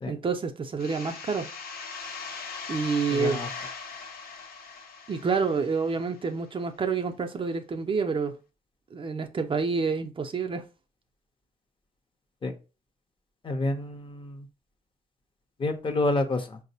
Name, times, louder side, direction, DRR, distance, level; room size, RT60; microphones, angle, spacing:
voice 1, 0.1-1.5 2.7-3.4 5.1-8.3 8.9-10.6, right 5 dB, 35° right, 0.4 m, -28 dB
sound 1, 0.8-6.3, left 5 dB, 80° left, 0.7 m, -40 dB
voice 2, 3.1-3.5 12.4-12.5 13.4-14.5 15.6-16.6, left 2 dB, 35° left, 0.6 m, -28 dB
4.5 x 2.0 x 2.7 m
cardioid pair, 80°, 16 cm